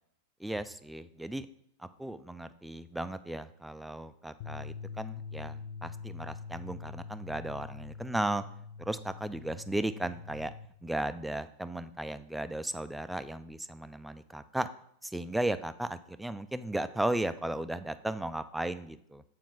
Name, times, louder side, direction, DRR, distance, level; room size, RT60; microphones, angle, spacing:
voice 1, 0.4-1.5 1.8-8.4 8.9-10.5 10.8-14.7 15.0-19.2, right 1 dB, 5° right, 12 dB, 0.3 m, -35 dB
sound 1, 4.4-10.7, left 5 dB, 45° left, 0.5 m, -44 dB
7.2 x 4.5 x 3.8 m, 0.67 s
figure-of-eight pair, 90°, 0 cm